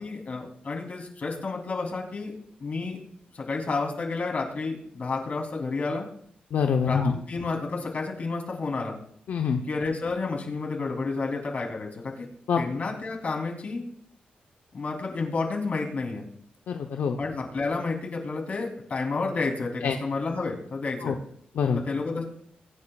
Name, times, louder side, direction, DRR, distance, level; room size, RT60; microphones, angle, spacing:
voice 1, 0.0-2.3 2.6-3.0 3.3-6.1 6.8-9.0 9.6-12.3 12.6-13.9 14.7-16.2 17.2-21.2 21.8-22.2, left 3 dB, 50° left, 1 dB, 3.1 m, -30 dB
voice 2, 6.5-7.1 9.3-9.6 12.5-12.6 16.7-17.2 19.8-20.0 21.0-21.1 21.6-21.8, left 6 dB, 80° left, 4 dB, 0.8 m, -25 dB
22.5 x 9.7 x 2.4 m, 0.68 s
cardioid pair, 85°, 3 cm